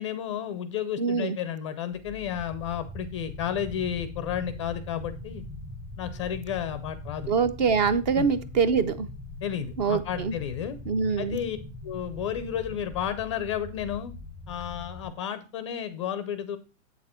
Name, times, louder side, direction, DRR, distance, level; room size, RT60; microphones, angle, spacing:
voice 1, 0.0-5.4 6.0-7.3 8.2-8.3 9.4-10.8 11.2-11.6 11.8-14.1 14.5-16.6, left 9 dB, 25° left, 12 dB, 0.4 m, -32 dB
voice 2, 1.0-1.4 7.3-9.1 9.8-10.3 10.9-11.4, right 5 dB, 35° right, 15 dB, 0.6 m, -24 dB
sound 1, 1.9-15.1, left 2 dB, 5° right, 0.9 m, -41 dB
8.1 x 6.6 x 4.3 m, 0.33 s
hypercardioid pair, 145°, 39 cm